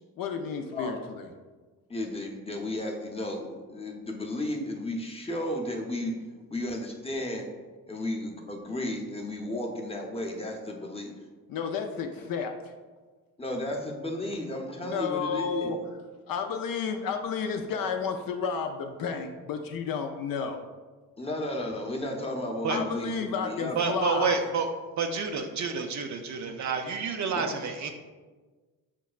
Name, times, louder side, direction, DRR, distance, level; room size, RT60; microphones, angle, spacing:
voice 1, 0.2-1.3 11.5-12.7 14.8-15.8 16.3-20.6 22.7-24.4, left 6 dB, 55° left, 5 dB, 0.4 m, -32 dB
voice 2, 1.9-6.2 6.5-7.5 7.9-11.1 12.2-12.3 13.4-15.7 21.2-23.8 27.2-27.6, left 1 dB, 15° left, 1 dB, 0.6 m, -33 dB
voice 3, 23.8-24.7 25.0-27.9, right 5 dB, 45° right, 5 dB, 0.4 m, -29 dB
5.9 x 2.1 x 2.4 m, 1.3 s
supercardioid pair, 55°, 43 cm